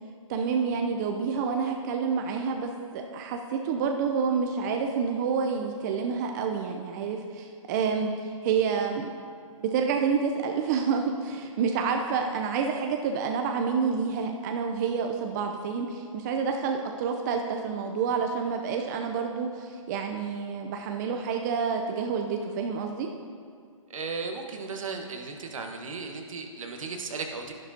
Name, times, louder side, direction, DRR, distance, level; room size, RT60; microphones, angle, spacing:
voice 1, 0.3-9.1 9.6-23.1, right 6 dB, 35° right, 3 dB, 0.5 m, -28 dB
voice 2, 23.9-27.5, right 4 dB, 70° right, 3 dB, 1.3 m, -35 dB
11.5 x 10.5 x 2.7 m, 2.2 s
hypercardioid pair, 140°, 17 cm